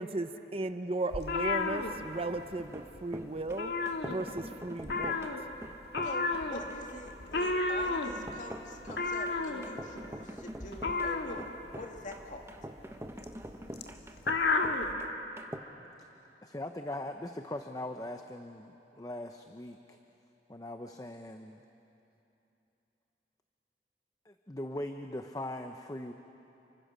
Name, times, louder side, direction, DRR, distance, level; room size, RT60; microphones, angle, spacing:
voice 1, 0.0-3.7 4.1-5.2, right 2 dB, 35° right, 9 dB, 0.8 m, -35 dB
sound 1, 1.1-2.6 2.9-3.1 3.4-4.5 4.8-14.9, left 3 dB, 65° left, 1.9 m, -32 dB
sound 2, 2.6-15.6, right 1 dB, 15° right, 1.1 m, -45 dB
voice 2, 6.0-12.5, left 1 dB, 45° left, 2 dB, 2.4 m, -45 dB
voice 3, 16.4-20.0 20.5-21.6 24.3-26.1, left 1 dB, 20° left, 6 dB, 0.8 m, -40 dB
29.5 x 24.5 x 6.8 m, 2.9 s
head